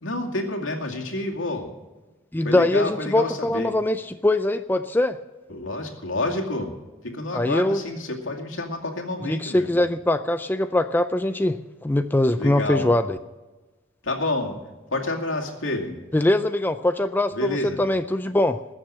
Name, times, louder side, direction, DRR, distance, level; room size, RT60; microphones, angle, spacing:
voice 1, 0.0-1.7 2.4-3.7 5.5-6.7 7.0-9.8 12.4-12.9 14.0-14.6 14.9-16.0 17.3-17.8, left 2 dB, 80° left, 2 dB, 2.3 m, -29 dB
voice 2, 2.3-5.2 7.3-7.8 9.3-13.2 16.1-17.5 17.8-18.6, left 1 dB, 10° left, 9 dB, 0.4 m, -22 dB
20.0 x 7.4 x 6.4 m, 1.2 s
head